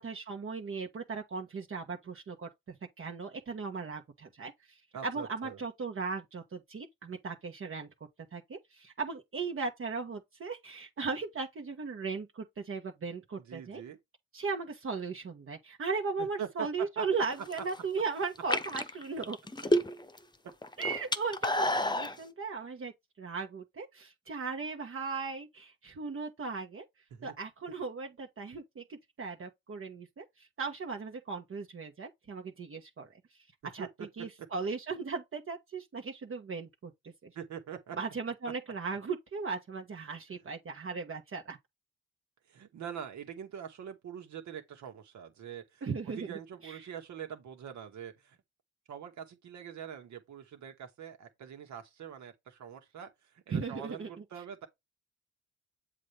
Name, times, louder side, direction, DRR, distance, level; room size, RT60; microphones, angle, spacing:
voice 1, 0.0-4.5 5.0-7.9 8.3-13.8 14.3-19.4 20.8-22.9 23.2-26.8 27.2-33.1 33.7-33.9 34.2-37.3 38.0-41.6 45.8-46.2 46.6-46.8 53.5-54.1, right 4 dB, 45° right, 1.5 m, -37 dB
voice 2, 4.9-5.6 13.4-14.0 16.2-17.1 17.6-17.7 27.1-27.3 33.6-33.9 34.2-34.3 37.3-38.0 40.3-40.4 42.5-48.4 48.9-54.7, right 8 dB, 75° right, 2.0 m, -44 dB
sound 1, 17.3-17.8 18.3-20.2 20.5-22.1, left 1 dB, 15° left, 1.0 m, -30 dB
7.5 x 3.9 x 3.4 m
supercardioid pair, 65°, 29 cm